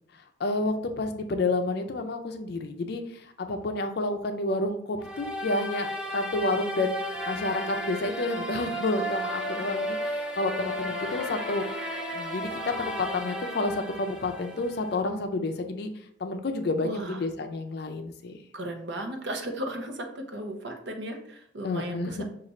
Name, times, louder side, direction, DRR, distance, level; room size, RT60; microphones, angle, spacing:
voice 1, 0.4-15.9 16.2-18.4 21.6-22.2, left 2 dB, 55° left, 6 dB, 0.5 m, -30 dB
sound 1, 5.0-15.0, equal, 5° right, 0.4 m, -34 dB
voice 2, 16.8-17.2 18.5-22.2, right 1 dB, 65° right, 4 dB, 0.7 m, -35 dB
6.0 x 2.4 x 3.1 m, 0.70 s
head